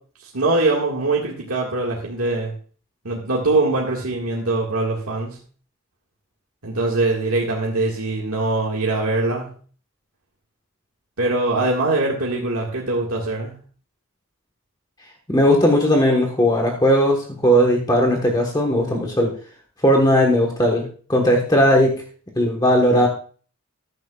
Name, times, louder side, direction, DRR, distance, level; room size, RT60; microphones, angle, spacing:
voice 1, 0.2-2.5 3.0-5.4 6.6-9.5 11.2-13.5, right 2 dB, 85° right, -3 dB, 1.8 m, -22 dB
voice 2, 15.3-19.3 19.8-21.9 22.4-23.1, equal, 20° left, 1 dB, 1.3 m, -17 dB
14.0 x 10.5 x 2.4 m, 0.42 s
head